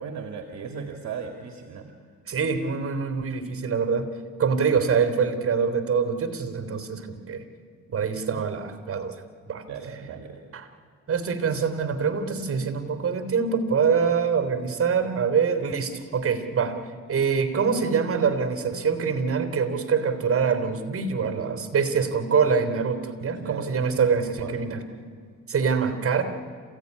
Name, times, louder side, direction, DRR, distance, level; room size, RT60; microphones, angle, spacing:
voice 1, 0.0-1.9 7.9-8.0 8.3-8.4 9.7-10.4 23.4-24.6, right 6 dB, 65° right, 4 dB, 2.2 m, -37 dB
voice 2, 2.3-4.1 4.4-7.4 7.9-9.2 9.5-9.6 10.5-10.7 11.1-16.8 17.1-24.8 25.5-26.2, right 6 dB, 45° right, 7 dB, 3.3 m, -24 dB
28.0 x 16.0 x 9.6 m, 2.1 s
cardioid pair, 90°, 30 cm